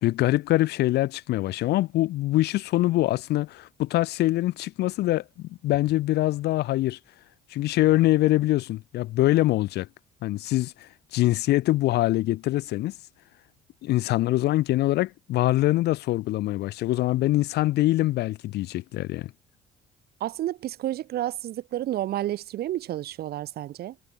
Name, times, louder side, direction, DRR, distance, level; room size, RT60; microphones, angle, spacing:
voice 1, 0.0-7.0 7.5-9.9 10.2-12.9 13.8-19.3, left 16 dB, 80° left, 2.6 m, -24 dB
voice 2, 20.2-24.0, right 13 dB, 65° right, 2.9 m, -30 dB
cardioid pair, 110°, 17 cm